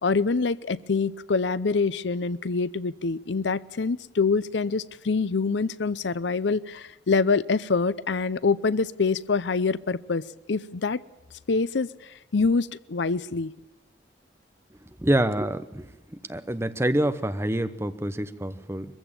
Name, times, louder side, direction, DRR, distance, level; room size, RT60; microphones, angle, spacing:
voice 1, 0.0-11.0 11.5-13.5, left 4 dB, 85° left, 18 dB, 0.6 m, -25 dB
voice 2, 15.0-15.8 16.3-18.9, right 1 dB, 15° right, 11 dB, 0.9 m, -26 dB
23.0 x 15.5 x 8.9 m, 1.0 s
head